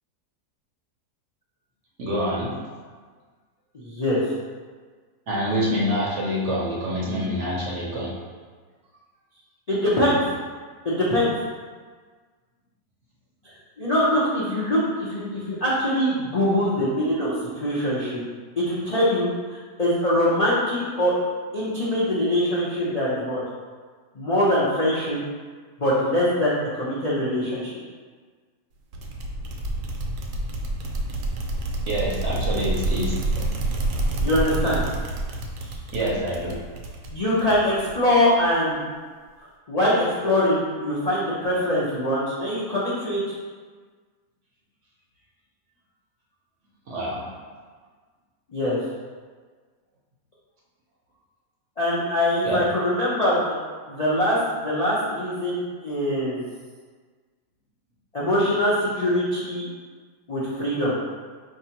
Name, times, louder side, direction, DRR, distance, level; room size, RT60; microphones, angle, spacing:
voice 1, 2.0-2.6 5.3-8.2 31.9-33.7 35.9-36.6 46.9-47.3 52.4-52.6, equal, 60° right, -5 dB, 0.8 m, -27 dB
voice 2, 3.7-4.2 9.7-10.2 10.8-11.3 13.8-18.2 18.6-21.1 21.5-23.4 24.1-25.2 25.8-27.7 34.2-34.8 37.1-38.8 39.7-43.4 48.5-48.8 51.8-53.6 53.9-56.4 58.1-59.7 60.3-60.9, left 1 dB, 60° left, -9 dB, 0.4 m, -23 dB
sound 1, 28.9-38.2, right 2 dB, 80° right, 1.1 m, -28 dB
4.7 x 2.9 x 2.9 m, 1.5 s
omnidirectional pair, 1.7 m